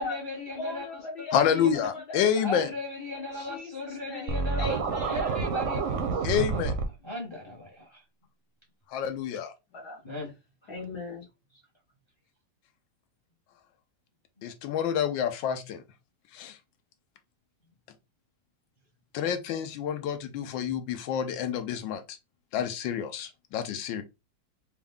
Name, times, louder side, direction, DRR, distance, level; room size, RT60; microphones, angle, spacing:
voice 1, 0.0-0.9 1.3-1.9 2.4-4.8 5.1-6.4 7.0-8.0 10.0-10.3, left 2 dB, 20° left, 0.7 m, -37 dB
voice 2, 0.5-2.7 3.1-5.4 9.7-10.0 10.7-11.3, left 2 dB, 55° left, 1.7 m, -39 dB
voice 3, 1.3-2.7 6.2-6.7 8.9-9.5 14.4-15.8 16.3-16.5 19.1-22.2 22.5-24.0, left 8 dB, 75° left, 1.4 m, -28 dB
Scratching (performance technique), 4.3-6.8, right 4 dB, 60° right, 0.8 m, -28 dB
4.4 x 2.4 x 3.5 m
omnidirectional pair, 2.2 m